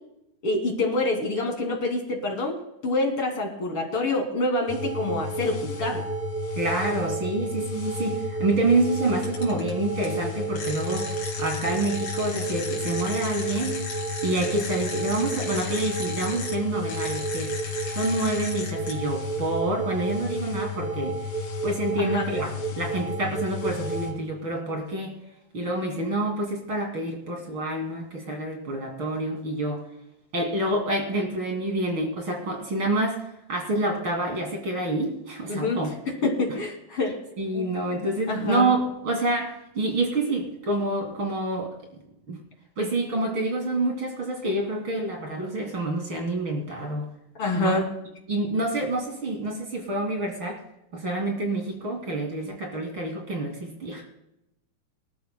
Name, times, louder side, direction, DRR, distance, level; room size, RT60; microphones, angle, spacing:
voice 1, 0.4-2.6 2.8-6.0 22.0-22.2 35.5-35.8 36.2-37.2 37.5-37.7 37.9-38.7 47.4-47.9, left 2 dB, 40° left, 1 dB, 3.3 m, -26 dB
sound 1, 4.7-24.1, right 1 dB, 80° left, 3.8 m, -31 dB
voice 2, 6.6-11.1 11.4-13.9 14.2-17.5 17.9-21.2 21.6-25.1 25.5-29.8 30.3-33.2 33.5-35.9 37.4-41.7 42.3-42.4 42.8-47.1 47.6-47.8 48.3-50.6 50.9-54.0, right 2 dB, 40° right, 1 dB, 3.1 m, -27 dB
sound 2, 9.2-9.7 10.0-10.1 10.5-16.5 16.9-18.9, left 4 dB, 65° left, 4.2 m, -36 dB
25.5 x 12.5 x 2.3 m, 0.84 s
omnidirectional pair, 4.0 m